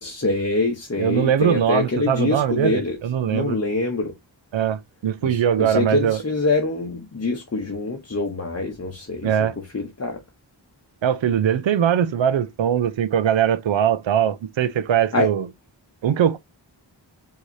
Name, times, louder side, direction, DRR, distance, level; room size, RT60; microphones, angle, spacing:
voice 1, 0.0-3.0 3.3-4.1 5.2-9.5 9.7-10.2 15.1-15.3, left 3 dB, 35° left, 0.9 m, -25 dB
voice 2, 1.0-3.6 4.5-6.2 9.2-9.5 11.0-15.5 16.0-16.4, right 9 dB, 75° right, 0.6 m, -21 dB
4.7 x 2.9 x 2.6 m
wide cardioid pair, 45°, 46 cm